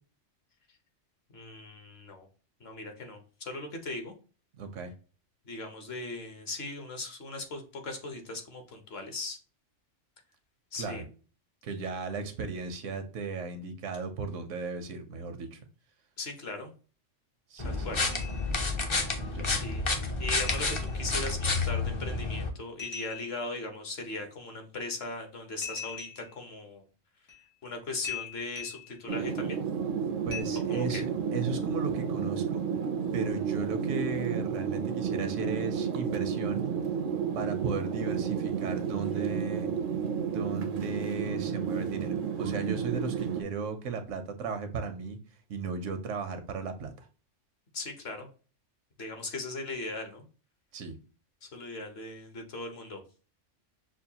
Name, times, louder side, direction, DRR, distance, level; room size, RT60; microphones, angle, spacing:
voice 1, 1.3-2.3 2.6-4.1 5.4-9.4 10.7-11.0 16.2-16.7 17.6-18.0 19.5-19.8 20.2-26.8 27.6-29.6 30.7-31.0 47.7-48.3 49.0-50.2 51.4-53.0, left 3 dB, 60° left, 5 dB, 1.1 m, -38 dB
voice 2, 4.6-4.9 10.8-11.0 11.6-15.6 17.5-17.9 19.2-19.5 30.2-32.7 33.1-36.7 37.3-39.7 40.2-45.2 45.5-47.1 50.7-50.9, right 4 dB, 85° right, 8 dB, 1.1 m, -36 dB
sound 1, 17.6-22.5, left 3 dB, 40° left, 0.4 m, -30 dB
sound 2, 18.1-18.6 19.0-19.1 20.3-21.1 22.8-23.5 25.6-26.4 27.3-27.4 28.0-29.0 30.3-30.4, left 7 dB, 80° left, 1.6 m, -41 dB
sound 3, 29.1-43.4, right 7 dB, 60° right, 0.5 m, -31 dB
6.2 x 2.3 x 2.8 m, 0.37 s
omnidirectional pair, 1.3 m